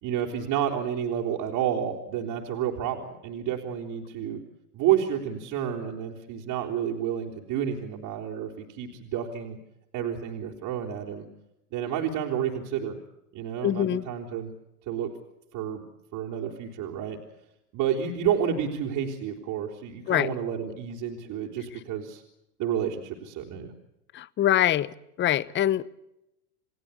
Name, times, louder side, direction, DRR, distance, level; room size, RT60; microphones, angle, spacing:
voice 1, 0.0-4.4 4.7-9.6 9.9-11.3 11.7-13.0 13.3-14.5 14.9-15.1 15.5-15.8 16.1-17.2 17.7-22.2 22.6-23.7, right 9 dB, 45° right, 4.0 m, -30 dB
voice 2, 13.6-14.1 20.1-20.3 24.1-25.9, left 12 dB, 25° left, 0.9 m, -24 dB
29.5 x 19.0 x 8.4 m
hypercardioid pair, 95°, 46 cm